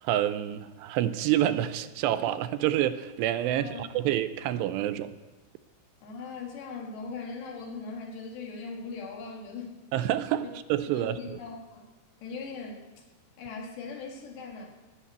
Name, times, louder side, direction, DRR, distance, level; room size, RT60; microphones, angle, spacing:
voice 1, 0.0-5.1 9.9-11.4, right 12 dB, 85° right, 2.7 m, -28 dB
voice 2, 3.4-4.1 6.0-9.8 10.4-10.5 10.9-11.9 12.2-12.9 13.4-14.7, left 4 dB, 80° left, 4.2 m, -40 dB
18.5 x 7.0 x 8.2 m
omnidirectional pair, 4.9 m